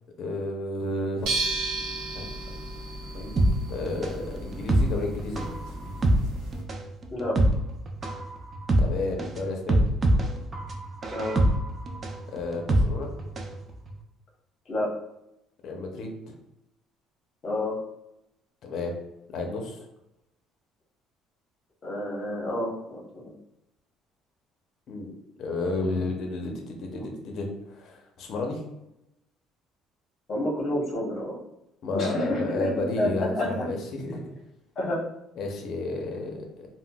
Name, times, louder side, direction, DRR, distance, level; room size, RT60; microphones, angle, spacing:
voice 1, 0.2-1.3 2.1-2.6 3.1-3.3 3.7-5.5 8.8-9.8 12.3-13.1 15.6-16.3 18.6-18.9 19.3-19.8 24.9-28.6 31.8-34.2 35.4-36.7, left 2 dB, 55° left, 2 dB, 0.6 m, -32 dB
sound 1, 1.2-6.6, right 2 dB, 80° right, 0.8 m, -34 dB
sound 2, 3.4-13.6 13.9-14.0, right 1 dB, 30° right, 0.4 m, -25 dB
voice 2, 17.4-17.8 21.8-23.3 30.3-31.4 31.9-32.7 33.0-33.5 34.8-35.0, left 1 dB, 40° left, -3 dB, 1.0 m, -29 dB
3.6 x 2.1 x 2.3 m, 0.87 s
cardioid pair, 125°, 0 cm